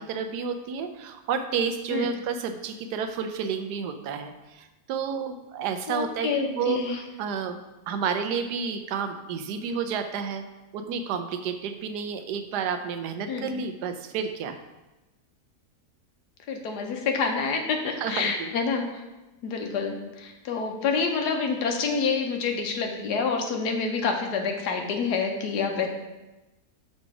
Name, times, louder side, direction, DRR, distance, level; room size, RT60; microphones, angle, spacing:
voice 1, 0.0-7.6 7.9-10.4 10.7-14.6 18.0-18.5, right 6 dB, 80° right, 8 dB, 1.2 m, -30 dB
voice 2, 5.9-7.0 13.3-13.5 16.5-18.9 19.4-25.9, left 5 dB, 75° left, 3 dB, 1.4 m, -27 dB
6.3 x 4.0 x 4.7 m, 1.1 s
omnidirectional pair, 1.8 m